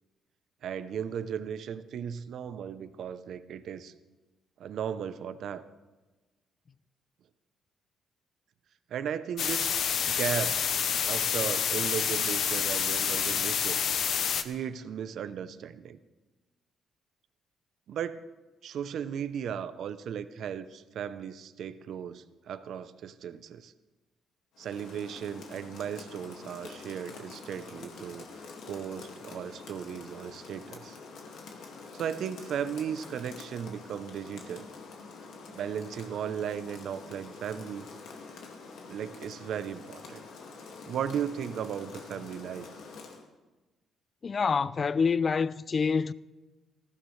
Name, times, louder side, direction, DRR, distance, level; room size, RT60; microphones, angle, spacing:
voice 1, 0.6-3.9 4.6-5.6 8.9-9.7 10.0-10.6 11.0-13.8 14.4-16.0 17.9-18.2 18.6-23.7 24.6-31.0 31.9-34.7 35.5-37.9 38.9-40.2 40.9-42.7, right 8 dB, 65° right, 0.6 m, -36 dB
sound 1, 9.4-14.4, left 7 dB, 60° left, 0.8 m, -28 dB
Rain, 24.5-43.3, left 4 dB, 75° left, 2.0 m, -46 dB
voice 2, 44.2-46.1, left 5 dB, 35° left, 0.4 m, -26 dB
19.0 x 15.0 x 3.2 m
cardioid pair, 120°, 0 cm